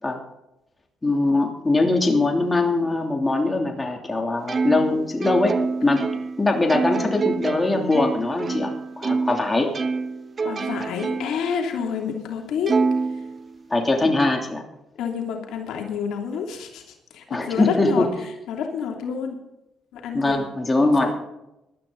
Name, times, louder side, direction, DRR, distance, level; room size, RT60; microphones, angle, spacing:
voice 1, 1.0-5.5 5.8-6.0 6.4-9.7 13.7-14.6 17.3-18.1 20.1-21.1, left 2 dB, 20° left, 2 dB, 3.1 m, -21 dB
Plucked string instrument, 4.5-9.4 9.7-11.5 11.9-12.0 12.7-13.8, right 4 dB, 40° right, 1.0 m, -26 dB
voice 2, 10.4-12.7 15.0-18.1 18.5-19.4 19.9-20.4 20.8-21.1, left 6 dB, 85° left, 2 dB, 2.8 m, -29 dB
18.5 x 12.0 x 4.0 m, 0.90 s
cardioid pair, 90°, 0 cm